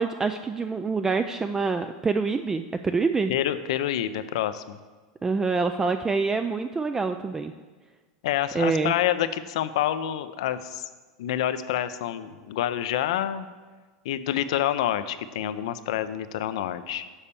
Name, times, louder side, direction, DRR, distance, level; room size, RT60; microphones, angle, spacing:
voice 1, 0.0-3.3 5.2-7.5 8.5-8.9, right 4 dB, 15° right, 8 dB, 0.3 m, -26 dB
voice 2, 3.3-4.8 8.2-10.9 11.2-13.5 14.0-17.1, left 11 dB, 75° left, 12 dB, 0.5 m, -27 dB
7.1 x 4.2 x 6.8 m, 1.4 s
hypercardioid pair, 110°, 3 cm